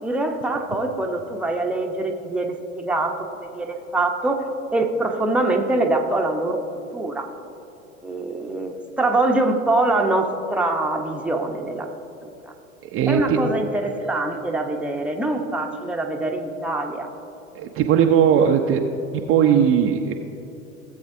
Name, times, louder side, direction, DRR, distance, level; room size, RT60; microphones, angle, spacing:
voice 1, 0.0-3.1 3.4-4.4 4.7-6.6 6.9-7.3 8.0-11.9 13.1-17.1, right 2 dB, 5° right, 2 dB, 0.8 m, -24 dB
voice 2, 12.8-13.4 17.5-18.8 19.1-20.1, right 8 dB, 30° right, 3 dB, 0.6 m, -18 dB
17.0 x 7.7 x 2.7 m, 2.9 s
figure-of-eight pair, 90°, 41 cm